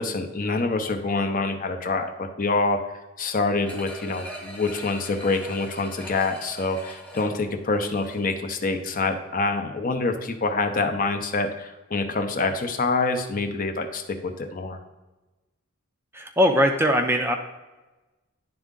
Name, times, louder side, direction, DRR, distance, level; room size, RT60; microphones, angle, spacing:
voice 1, 0.0-2.8 3.2-14.8, left 3 dB, 40° left, 6 dB, 0.6 m, -26 dB
sound 1, 3.7-8.4 8.8-8.9, equal, 5° left, 0.9 m, -41 dB
voice 2, 16.1-17.4, equal, 10° right, 4 dB, 0.4 m, -20 dB
10.5 x 3.6 x 3.7 m, 1.1 s
head